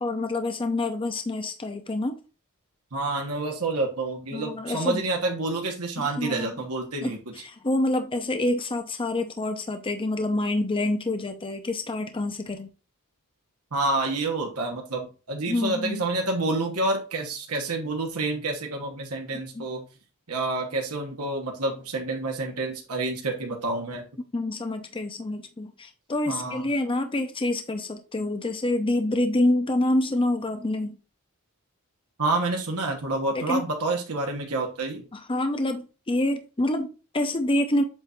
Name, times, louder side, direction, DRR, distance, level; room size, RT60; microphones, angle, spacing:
voice 1, 0.0-2.2 4.3-5.1 6.0-6.5 7.0-7.2 7.4-12.7 15.5-16.0 19.3-19.7 24.3-31.0 33.3-33.6 35.1-37.8, left 1 dB, 25° left, 0.6 m, -27 dB
voice 2, 2.9-7.2 13.7-19.8 20.3-24.1 26.3-26.7 32.2-35.0, right 2 dB, 75° right, 1.4 m, -28 dB
8.0 x 2.7 x 4.4 m
head